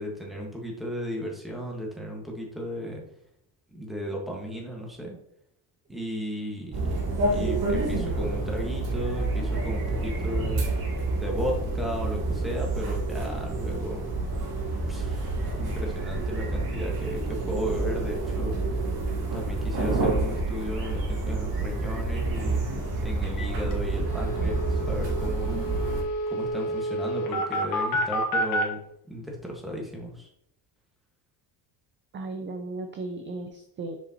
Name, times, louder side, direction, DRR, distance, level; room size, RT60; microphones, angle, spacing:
voice 1, 0.0-3.0 3.7-5.2 5.9-6.9 7.3-10.6 11.1-14.0 14.9-18.5 19.3-22.6 23.0-25.6 26.3-28.8 29.1-30.3, equal, ahead, -2 dB, 1.6 m, -35 dB
sound 1, 6.7-26.0, right 2 dB, 60° right, 1.9 m, -28 dB
sound 2, 23.4-23.5 23.7-23.8 24.0-28.6, equal, 50° left, 1.6 m, -29 dB
voice 2, 32.1-34.0, right 2 dB, 25° right, 5 dB, 0.5 m, -35 dB
6.9 x 5.0 x 2.9 m, 0.73 s
cardioid pair, 135°, 42 cm